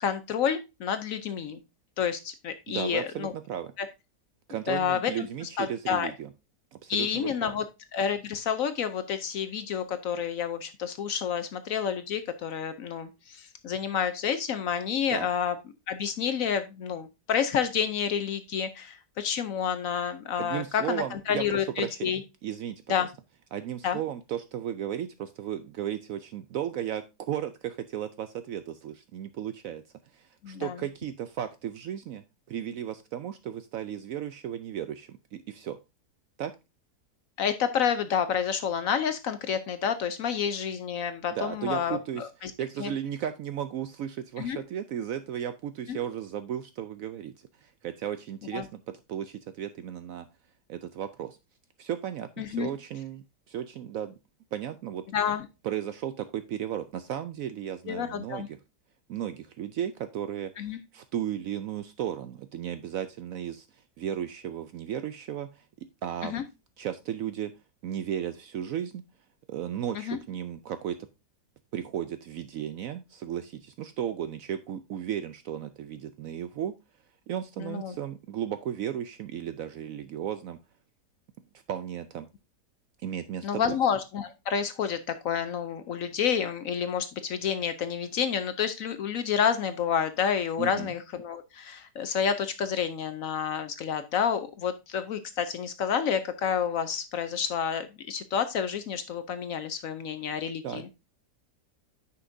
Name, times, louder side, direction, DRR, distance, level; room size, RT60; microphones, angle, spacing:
voice 1, 0.0-1.6 2.0-3.3 3.8-3.9 4.7-5.3 5.6-6.1 6.9-7.6 7.9-15.5 15.9-22.2 22.9-23.1 23.8-24.0 30.4-30.7 37.4-42.5 42.8-42.9 44.4-44.6 45.9-46.0 48.5-48.6 52.4-52.7 55.1-55.5 57.9-58.5 60.6-60.8 66.2-66.4 69.9-70.2 77.6-77.9 83.4-100.9, left 7 dB, 65° left, 10 dB, 0.9 m, -29 dB
voice 2, 2.7-3.7 4.5-6.3 6.8-7.5 15.1-15.3 20.4-22.1 22.4-23.1 23.5-29.8 30.1-35.8 36.4-36.5 41.3-42.3 42.6-48.8 49.1-50.3 50.7-51.4 51.8-54.1 54.5-55.0 55.6-58.5 59.1-66.4 66.8-67.5 67.8-69.0 69.5-71.0 71.7-76.7 77.3-80.6 81.7-82.3 83.0-83.8 90.6-90.9 100.6-100.9, right 10 dB, 70° right, 10 dB, 0.8 m, -35 dB
9.7 x 5.8 x 2.6 m, 0.26 s
omnidirectional pair, 1.8 m